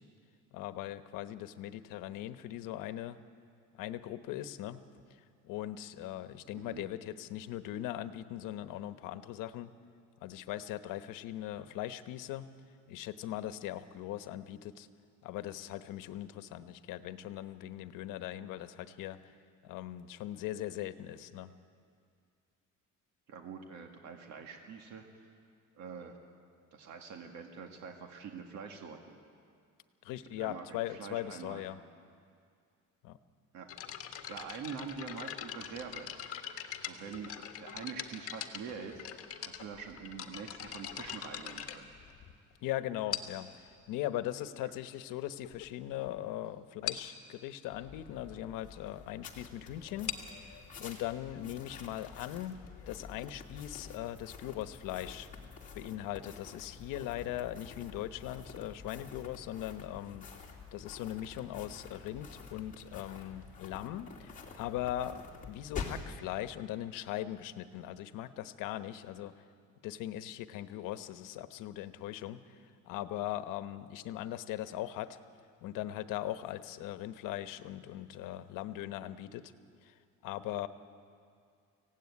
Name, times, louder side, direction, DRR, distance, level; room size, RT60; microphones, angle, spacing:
voice 1, 0.5-3.2 3.7-4.8 5.1-9.7 10.2-12.5 12.9-14.9 15.2-19.3 19.6-21.5 30.0-31.8 33.0-33.2 42.6-50.1 50.4-52.6 52.9-55.3 55.7-69.4 69.8-75.2 75.6-79.5 79.8-80.7, left 13 dB, 85° left, 11 dB, 1.1 m, -40 dB
voice 2, 6.5-6.9 23.3-25.3 25.8-26.2 26.7-29.2 30.4-31.6 33.5-33.7 34.3-36.1 36.9-39.1 39.4-41.9, right 6 dB, 60° right, 3 dB, 2.1 m, -45 dB
sound 1, 33.7-42.5 43.1-43.5 44.4-44.5 45.1-45.2 45.4-45.7 46.0-46.1 46.3-46.4 46.9-47.2 49.8-53.3, left 10 dB, 45° left, 1.6 m, -43 dB
sound 2, 47.7-66.1, left 5 dB, 25° left, 2.6 m, -48 dB
24.5 x 17.0 x 9.7 m, 2.3 s
cardioid pair, 160°, 32 cm